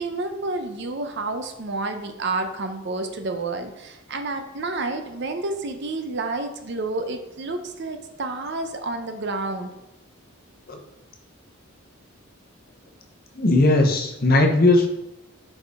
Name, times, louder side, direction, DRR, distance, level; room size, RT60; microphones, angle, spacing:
voice 1, 0.0-9.7, right 2 dB, 55° right, 6 dB, 0.7 m, -29 dB
voice 2, 13.4-14.9, left 2 dB, 45° left, 3 dB, 0.8 m, -18 dB
4.9 x 4.6 x 4.7 m, 0.91 s
head